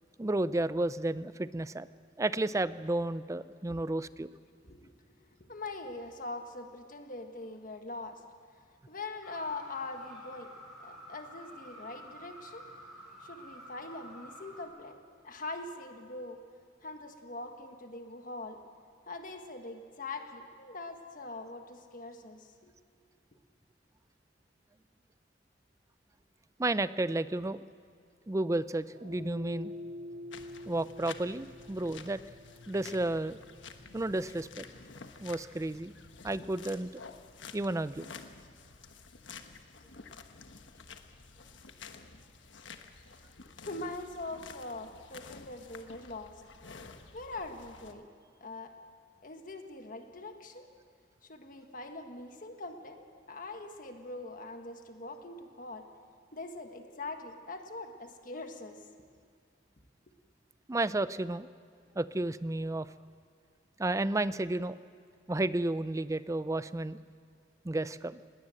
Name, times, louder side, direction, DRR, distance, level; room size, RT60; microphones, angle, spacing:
voice 1, 0.2-1.9 2.2-4.3 26.6-27.6 28.3-29.7 30.7-32.2 32.7-33.4 33.9-34.6 35.2-35.9 36.2-37.0 37.5-38.1 60.7-61.5 62.0-62.9 63.8-64.8 65.3-67.0 67.6-68.2, right 2 dB, 15° right, 15 dB, 0.4 m, -32 dB
voice 2, 5.4-8.2 8.9-10.5 10.8-12.7 13.2-15.0 15.2-16.4 16.8-18.6 19.1-22.7 43.6-46.4 47.1-48.1 48.4-48.7 49.2-50.7 51.2-55.9 56.3-58.8, left 2 dB, 45° left, 5 dB, 1.6 m, -42 dB
sound 1, 9.2-14.6, equal, ahead, 6.3 m, -50 dB
sound 2, 28.9-37.4, left 2 dB, 75° right, 4.1 m, -48 dB
sound 3, 30.3-47.9, left 5 dB, 85° left, 1.2 m, -51 dB
20.5 x 18.5 x 7.8 m, 2.2 s
head